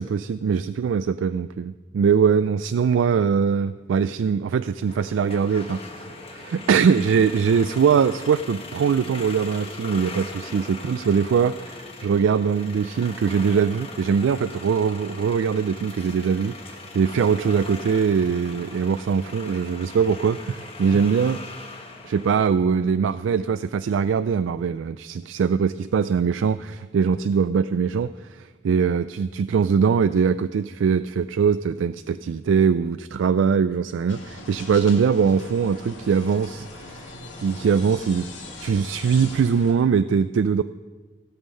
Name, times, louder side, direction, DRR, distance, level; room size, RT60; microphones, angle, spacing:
voice 1, 0.0-21.4 22.0-37.1 37.4-38.3 38.6-40.6, right 6 dB, 90° right, 13 dB, 0.3 m, -22 dB
sound 1, 4.9-22.5, left 3 dB, 30° left, 1.3 m, -40 dB
sound 2, 34.1-39.7, left 2 dB, 85° left, 2.3 m, -41 dB
16.5 x 7.2 x 5.5 m, 1.3 s
head